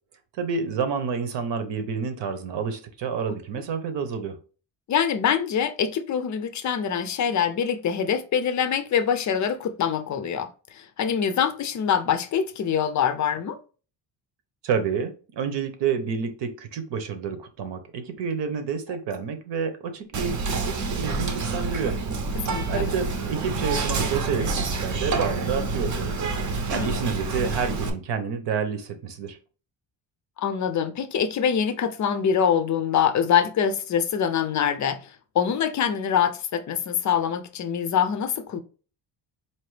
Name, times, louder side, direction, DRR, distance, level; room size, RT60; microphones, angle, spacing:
voice 1, 0.4-4.4 14.6-22.0 22.7-26.2 26.7-29.4, right 6 dB, 70° right, 1.0 m, -29 dB
voice 2, 4.9-13.6 22.4-22.9 26.7-26.9 30.4-38.6, left 8 dB, 40° left, 0.5 m, -24 dB
Whispering, 20.1-27.9, right 3 dB, 40° right, 0.7 m, -28 dB
4.5 x 2.9 x 3.2 m
cardioid pair, 180°, 44 cm